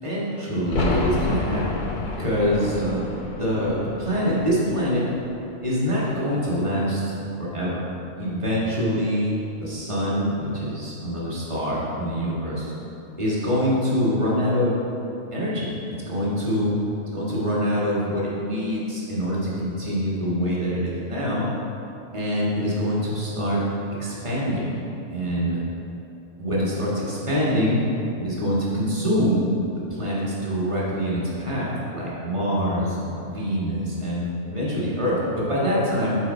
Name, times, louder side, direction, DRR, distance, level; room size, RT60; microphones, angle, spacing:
voice 1, 0.0-5.0 5.6-7.0 7.4-7.8 8.2-9.3 9.6-12.7 13.2-14.8 15.3-15.7 16.0-16.7 17.1-21.4 22.1-23.6 24.0-24.8 25.1-25.6 26.4-27.8 28.2-29.5 29.9-36.2, equal, 20° right, -7 dB, 1.6 m, -25 dB
sound 1, 0.6-6.2 6.5-6.6, left 3 dB, 45° left, 0.7 m, -31 dB
9.4 x 4.2 x 4.2 m, 2.9 s
omnidirectional pair, 1.5 m